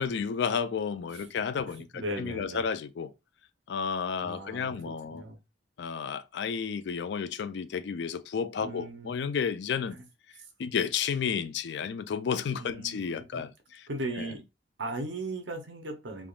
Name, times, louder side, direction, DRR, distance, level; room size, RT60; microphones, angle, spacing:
voice 1, 0.0-3.1 3.7-5.2 5.8-10.0 10.6-13.9 14.1-14.3, left 6 dB, 65° left, 0.3 m, -32 dB
voice 2, 1.7-2.7 4.2-4.7 5.1-5.4 8.6-9.1 12.6-13.0 13.3-13.4 13.9-14.4 14.8-16.3, right 2 dB, 70° right, 0.8 m, -37 dB
3.4 x 2.3 x 2.3 m
head